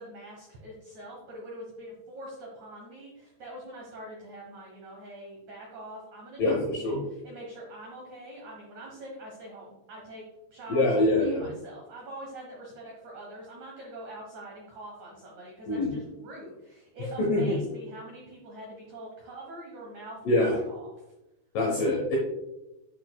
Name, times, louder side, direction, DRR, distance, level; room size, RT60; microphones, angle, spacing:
voice 1, 0.0-10.2 10.5-20.9, right 1 dB, 80° right, -2 dB, 1.6 m, -44 dB
voice 2, 6.4-7.1 10.7-11.5 15.7-15.9 17.2-17.6 20.3-20.6 21.5-22.2, left 2 dB, 85° left, -1 dB, 1.9 m, -24 dB
8.7 x 6.1 x 2.2 m, 0.93 s
omnidirectional pair, 5.3 m